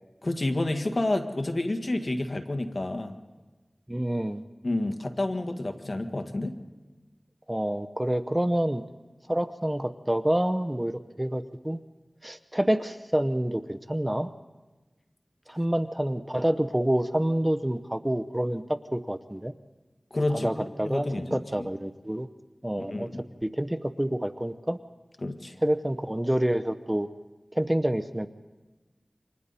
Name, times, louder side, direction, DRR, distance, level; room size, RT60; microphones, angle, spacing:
voice 1, 0.2-3.1 4.6-6.6 20.1-21.7 22.9-23.2 25.2-25.6, left 2 dB, 55° left, 5 dB, 1.7 m, -29 dB
voice 2, 3.9-4.4 7.5-8.8 9.3-11.8 12.2-14.3 15.5-19.5 20.3-22.3 22.6-23.1 23.4-24.8 25.6-27.1 27.5-28.3, right 1 dB, 15° right, 10 dB, 0.8 m, -27 dB
29.0 x 25.5 x 4.2 m, 1.2 s
wide cardioid pair, 60°, 0 cm